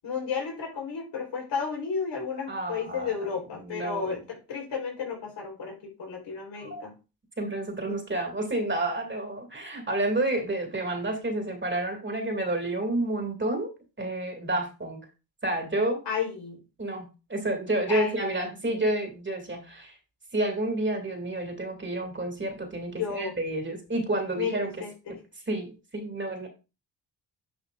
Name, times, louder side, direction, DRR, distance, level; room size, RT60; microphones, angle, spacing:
voice 1, 0.0-6.9 7.9-8.0 16.1-16.6 17.9-18.5 23.0-23.3 24.3-25.2, left 6 dB, 90° left, -1 dB, 3.9 m, -33 dB
voice 2, 2.5-3.1 3.6-4.2 6.6-6.8 7.4-13.7 14.0-15.0 15.4-16.0 16.8-19.9 20.3-24.7 25.5-26.5, right 1 dB, 30° right, 3 dB, 2.4 m, -30 dB
10.5 x 5.5 x 2.5 m, 0.30 s
cardioid pair, 75°, 40 cm